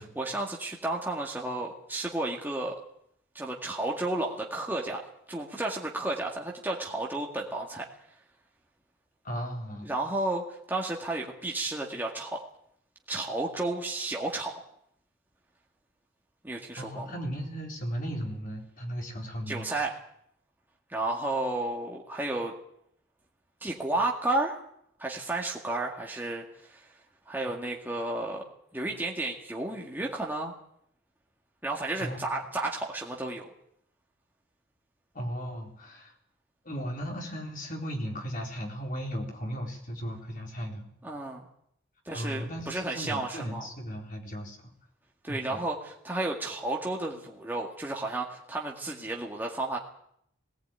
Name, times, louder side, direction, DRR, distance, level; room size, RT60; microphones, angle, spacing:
voice 1, 0.0-2.8 3.3-5.0 5.3-7.9 9.8-12.4 13.1-14.5 16.4-17.2 19.5-19.9 20.9-22.5 23.6-24.6 25.0-26.9 27.3-28.4 28.7-30.5 31.6-33.5 41.0-41.5 42.1-43.7 45.2-49.8, right 2 dB, 10° right, -2 dB, 2.0 m, -32 dB
voice 2, 9.2-9.9 16.8-19.7 32.0-32.2 35.1-36.1 36.6-40.9 42.1-44.6 45.3-45.6, equal, 40° left, 1 dB, 4.1 m, -36 dB
18.0 x 18.0 x 9.2 m, 0.72 s
head